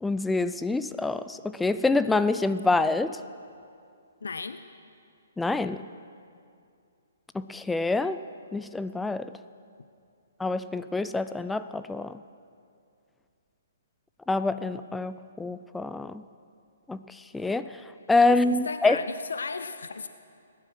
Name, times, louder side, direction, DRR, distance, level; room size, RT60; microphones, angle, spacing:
voice 1, 0.0-3.2 5.4-5.8 7.3-8.2 8.5-9.3 10.4-12.1 14.3-16.2 16.9-17.0 17.3-17.7 18.1-19.0, left 3 dB, 5° left, 12 dB, 0.4 m, -26 dB
voice 2, 4.2-4.6 18.3-20.1, left 4 dB, 65° left, 11 dB, 0.6 m, -35 dB
19.5 x 11.0 x 6.1 m, 2.4 s
figure-of-eight pair, 125°, 0 cm